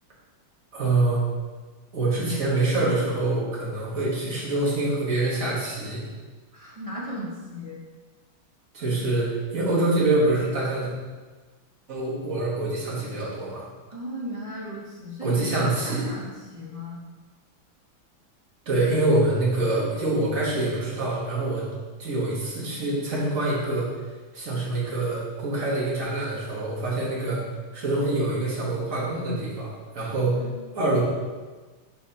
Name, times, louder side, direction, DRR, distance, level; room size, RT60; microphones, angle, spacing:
voice 1, 0.7-1.2 1.9-6.0 8.7-10.9 11.9-13.7 15.2-16.1 18.6-21.7 22.0-23.9 24.3-27.4 27.7-30.4 30.7-31.0, right 2 dB, 40° right, -6 dB, 1.8 m, -25 dB
voice 2, 6.5-7.8 13.9-17.0 30.4-30.5, equal, 25° right, -6 dB, 0.8 m, -36 dB
7.0 x 5.4 x 2.9 m, 1.3 s
omnidirectional pair, 2.3 m